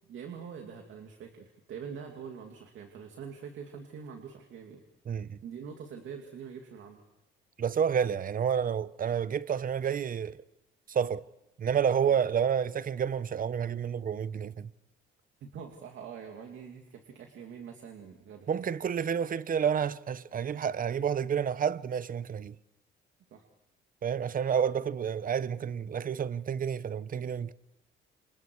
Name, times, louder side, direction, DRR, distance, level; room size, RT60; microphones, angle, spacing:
voice 1, 0.1-4.8 5.4-7.0 12.0-12.1 15.4-18.5 23.3-23.4, right 7 dB, 75° right, 2.6 m, -44 dB
voice 2, 5.1-5.4 7.6-10.4 10.9-11.2 11.6-14.7 18.5-22.5 24.0-27.5, right 7 dB, 45° right, 0.9 m, -29 dB
28.5 x 27.0 x 4.7 m
cardioid pair, 90°, 20 cm